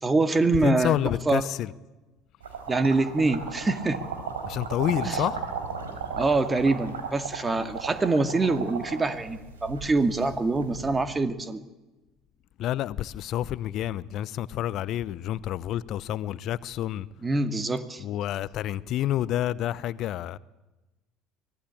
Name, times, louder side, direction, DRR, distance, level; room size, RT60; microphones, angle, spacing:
voice 1, 0.0-1.0 1.3-1.4 2.7-4.0 5.0-5.2 6.2-11.7 17.2-18.0, right 3 dB, 20° right, 2.2 m, -25 dB
voice 2, 0.6-1.7 4.5-5.4 12.6-17.1 18.0-20.4, left 12 dB, 55° left, 0.7 m, -29 dB
sound 1, 2.4-11.0, right 5 dB, 85° right, 3.9 m, -35 dB
24.0 x 19.0 x 8.6 m
hypercardioid pair, 70°, 0 cm